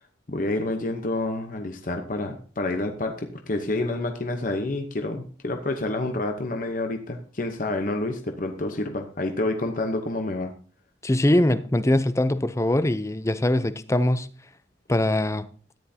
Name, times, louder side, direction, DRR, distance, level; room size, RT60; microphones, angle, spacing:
voice 1, 0.3-10.5, left 2 dB, 45° left, 1.0 m, -28 dB
voice 2, 11.0-14.3 14.9-15.5, left 1 dB, 15° left, 0.5 m, -22 dB
13.5 x 10.0 x 2.8 m
head